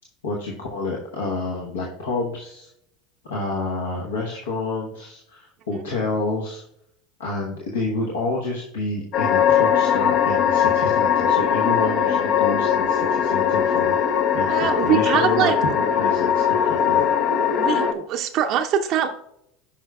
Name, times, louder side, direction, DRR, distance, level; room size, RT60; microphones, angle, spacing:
voice 1, 0.2-2.7 3.3-6.6 7.2-14.0 14.3-17.0, left 3 dB, 80° left, -2 dB, 1.0 m, -28 dB
sound 1, 9.1-17.9, left 8 dB, 55° left, 0.6 m, -20 dB
voice 2, 14.5-15.6 17.6-19.1, right 9 dB, 50° right, 4 dB, 0.5 m, -23 dB
10.5 x 5.0 x 2.3 m, 0.75 s
hypercardioid pair, 80°, 0 cm